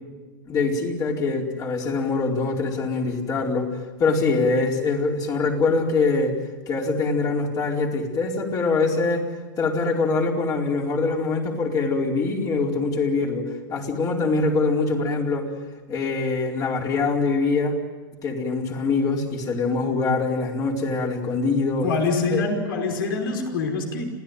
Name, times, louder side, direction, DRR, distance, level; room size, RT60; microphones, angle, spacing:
voice 1, 0.5-3.7 4.0-6.4 6.7-9.3 9.6-15.5 15.9-17.8 18.2-21.9 22.3-22.4, left 3 dB, 30° left, 0 dB, 4.6 m, -23 dB
voice 2, 21.8-24.0, left 4 dB, 75° left, 4 dB, 5.2 m, -25 dB
27.5 x 17.0 x 9.2 m, 1.3 s
hypercardioid pair, 125°, 12 cm